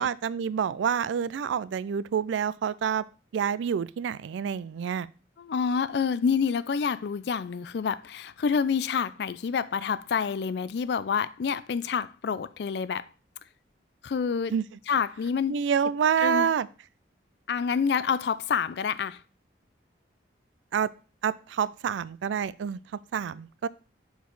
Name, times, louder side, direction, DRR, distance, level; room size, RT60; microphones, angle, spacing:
voice 1, 0.0-3.0 3.3-5.1 14.5-14.6 15.5-16.7 20.7-20.9 21.2-22.8 23.1-23.7, right 7 dB, 85° right, 0.3 m, -27 dB
voice 2, 5.4-13.1 14.0-14.5 14.9-15.6 16.2-16.5 17.5-19.2, left 6 dB, 65° left, 0.4 m, -28 dB
6.3 x 4.7 x 3.9 m
head